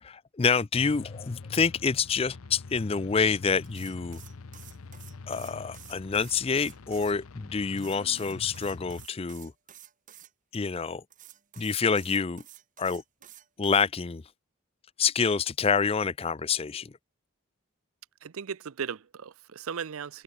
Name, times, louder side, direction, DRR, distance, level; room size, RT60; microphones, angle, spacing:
voice 1, 0.0-4.2 5.3-9.5 10.5-11.0 11.6-12.4 12.8-13.0 13.6-14.2 15.0-16.9, left 5 dB, 25° left, 0.4 m, -27 dB
sound 1, 0.7-9.1, left 3 dB, 75° left, 0.7 m, -45 dB
sound 2, 3.6-7.2 7.8-10.3 11.1-13.9, right 12 dB, 35° right, 1.4 m, -51 dB
voice 2, 18.2-20.2, right 7 dB, 70° right, 0.5 m, -37 dB
head